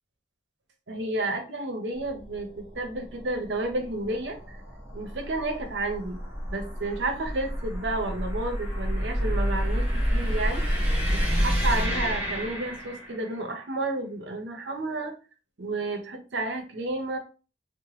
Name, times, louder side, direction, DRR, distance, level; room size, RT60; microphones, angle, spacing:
voice 1, 0.9-4.6 4.9-6.2 6.5-10.7 11.1-15.1 15.6-17.2, right 2 dB, 80° right, 4 dB, 0.7 m, -31 dB
sound 1, 2.0-13.4, equal, 5° right, 1.1 m, -29 dB
2.9 x 2.1 x 3.1 m, 0.34 s
head